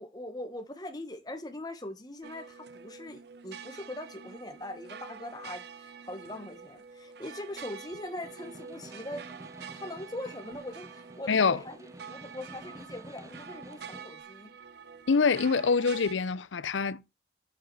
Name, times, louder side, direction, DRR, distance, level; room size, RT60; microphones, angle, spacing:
voice 1, 0.0-9.3 9.7-14.5, left 1 dB, 20° left, 1.3 m, -41 dB
sound 1, 2.2-16.1, right 6 dB, 60° right, 0.6 m, -47 dB
Snare drum, 8.1-14.2, right 1 dB, 15° right, 0.7 m, -50 dB
voice 2, 11.3-11.6 15.1-17.1, left 5 dB, 85° left, 0.6 m, -25 dB
7.7 x 7.1 x 4.7 m
head